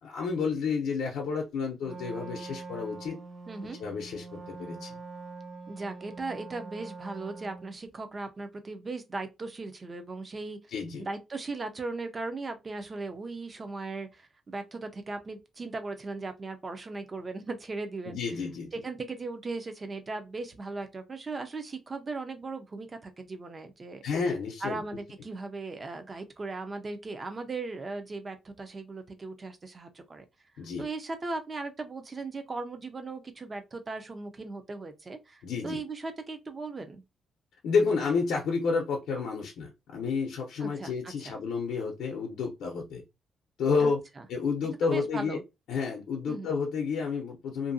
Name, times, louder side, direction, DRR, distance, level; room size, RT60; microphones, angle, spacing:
voice 1, 0.0-3.2 3.8-4.9 10.7-11.1 18.1-18.7 24.0-24.8 30.6-30.9 35.4-35.8 37.6-43.0 43.6-44.0 44.3-45.4 45.7-47.7, left 5 dB, 90° left, 0.6 m, -30 dB
Wind instrument woodwind instrument, 1.8-7.8, right 3 dB, 50° right, 0.7 m, -44 dB
voice 2, 3.5-3.8 5.7-10.6 11.0-18.2 18.7-24.0 24.6-30.2 30.8-37.0 40.6-41.4 43.8-44.3 44.8-45.4 46.3-46.5, right 3 dB, 25° right, 0.4 m, -38 dB
2.7 x 2.5 x 2.6 m
cardioid pair, 165°, 0 cm